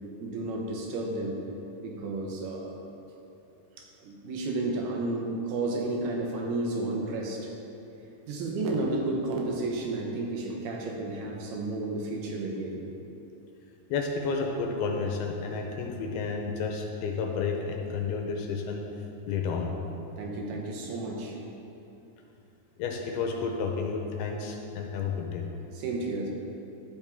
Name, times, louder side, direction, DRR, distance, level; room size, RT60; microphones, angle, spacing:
voice 1, 0.2-1.4 1.8-2.7 3.8-7.5 8.3-12.8 20.2-21.4 25.7-26.3, right 2 dB, 80° right, 0 dB, 2.9 m, -32 dB
voice 2, 13.9-18.8 19.3-19.7 22.8-25.4, left 5 dB, 85° left, 1 dB, 2.5 m, -31 dB
12.0 x 7.1 x 3.5 m, 2.9 s
omnidirectional pair, 4.7 m